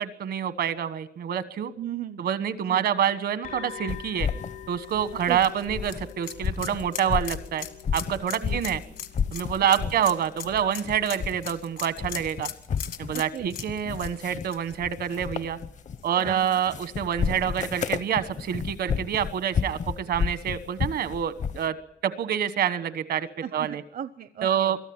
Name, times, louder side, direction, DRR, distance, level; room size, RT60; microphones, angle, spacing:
voice 1, 0.0-1.7 2.2-4.3 4.7-7.6 7.9-8.8 9.3-12.5 13.0-15.6 16.0-21.8 22.0-23.8 24.4-24.8, right 9 dB, 85° right, 14 dB, 1.2 m, -27 dB
voice 2, 1.8-2.2 2.7-2.9 5.3-5.5 8.4-8.6 9.8-9.9 13.1-13.5 16.2-16.6 23.4-24.7, right 10 dB, 65° right, 13 dB, 0.7 m, -36 dB
sound 1, 3.4-10.9, left 10 dB, 90° left, 7.9 m, -45 dB
sound 2, 3.9-6.1 6.4-8.8 9.1-10.1 10.4-11.6 11.9-21.7, left 6 dB, 50° left, 0.8 m, -32 dB
sound 3, 4.8-15.6 16.0-16.1 17.5-17.6, left 8 dB, 65° left, 1.6 m, -40 dB
23.5 x 13.5 x 8.7 m, 0.70 s
cardioid pair, 135°, 16 cm